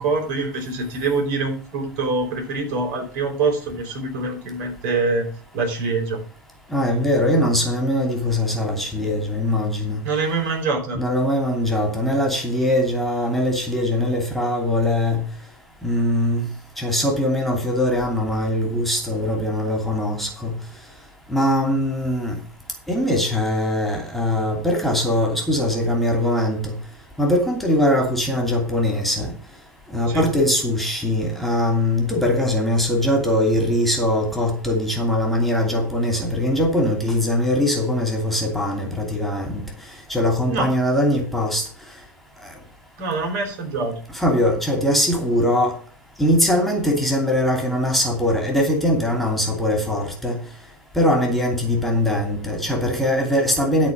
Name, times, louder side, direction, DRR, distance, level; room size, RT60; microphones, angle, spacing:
voice 1, 0.0-5.3 5.5-6.2 10.0-11.0 30.1-30.3 40.5-40.7 43.0-44.0, right 3 dB, 55° right, 3 dB, 4.5 m, -24 dB
voice 2, 6.7-10.0 10.9-15.2 15.8-16.4 16.8-20.5 21.3-22.4 22.9-26.7 27.2-29.3 29.9-39.6 40.1-41.6 44.1-45.8 46.2-50.4 50.9-53.9, left 1 dB, ahead, 2 dB, 2.8 m, -21 dB
12.5 x 4.4 x 7.4 m, 0.39 s
hypercardioid pair, 90°, 11 cm